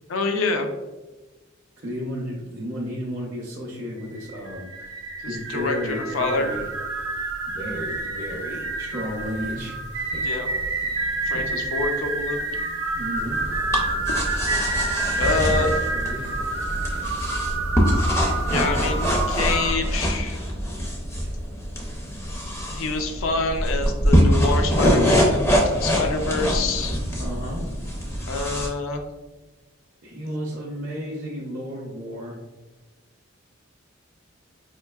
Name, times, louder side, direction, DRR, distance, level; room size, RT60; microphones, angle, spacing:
voice 1, 0.1-0.7 5.5-6.5 10.2-10.5 11.3-12.4 15.2-15.7 18.5-20.4 22.7-27.0 28.3-29.0, left 3 dB, 75° left, 4 dB, 0.4 m, -26 dB
voice 2, 1.8-4.9 5.3-6.6 7.5-10.4 11.3-11.6 13.0-13.4 15.7-16.3 21.2-21.4 27.2-27.6 30.0-32.4, equal, 40° right, -5 dB, 0.5 m, -33 dB
sound 1, 4.0-19.7, right 3 dB, 80° right, 0.7 m, -28 dB
sound 2, 13.2-28.7, equal, 15° left, 0.4 m, -24 dB
4.4 x 2.6 x 2.3 m, 1.2 s
head